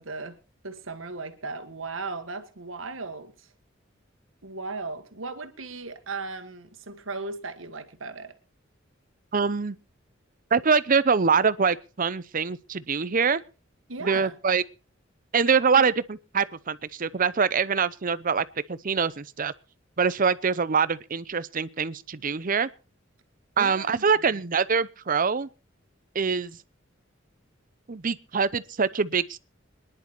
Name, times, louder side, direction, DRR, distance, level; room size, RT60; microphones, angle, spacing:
voice 1, 0.0-3.5 4.4-8.4 13.9-14.3 23.6-24.4, right 3 dB, 85° right, 1.7 m, -37 dB
voice 2, 9.3-9.8 10.5-13.4 14.0-14.6 15.3-19.5 20.0-22.7 23.6-25.5 26.1-26.6 27.9-29.4, right 5 dB, 45° right, 0.7 m, -24 dB
26.0 x 11.0 x 3.0 m
head